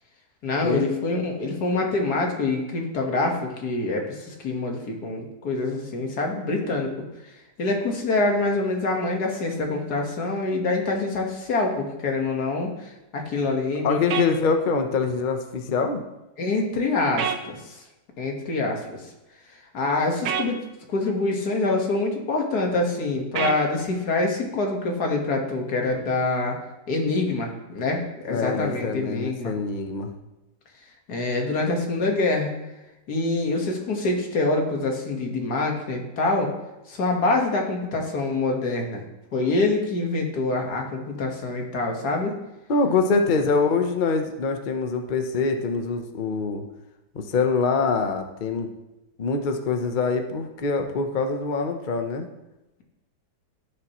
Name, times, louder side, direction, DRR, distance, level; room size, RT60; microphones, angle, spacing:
voice 1, 0.4-6.9 7.6-14.4 16.4-17.8 18.2-19.0 19.7-20.6 20.9-26.6 26.9-29.5 31.1-32.5 33.1-36.5 36.9-39.0 39.3-42.4, left 2 dB, 55° left, 1 dB, 1.9 m, -25 dB
voice 2, 13.8-16.0 28.3-30.1 42.7-46.6 47.1-48.7 49.2-52.3, left 4 dB, 80° left, 5 dB, 0.4 m, -24 dB
sound 1, 14.1-14.3 17.2-17.4 20.3-20.5 23.4-23.6, right 7 dB, 60° right, 1.1 m, -26 dB
15.0 x 6.7 x 3.0 m, 0.98 s
omnidirectional pair, 2.1 m